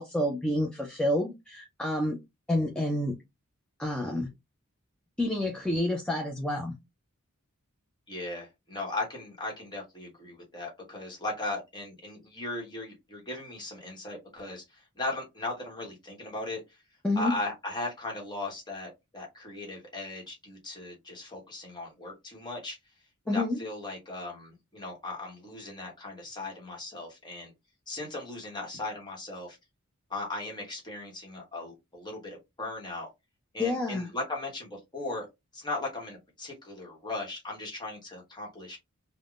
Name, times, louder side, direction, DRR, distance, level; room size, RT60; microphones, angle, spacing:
voice 1, 0.0-2.2 2.5-3.2 3.8-4.3 5.2-6.7 17.0-17.3 23.3-23.6 33.6-34.1, left 1 dB, 5° left, 0.4 m, -28 dB
voice 2, 8.1-16.6 17.2-22.8 23.2-27.5 27.9-29.6 30.1-33.1 33.5-35.3 35.5-38.8, left 2 dB, 20° left, 1.0 m, -37 dB
3.4 x 2.1 x 2.3 m
head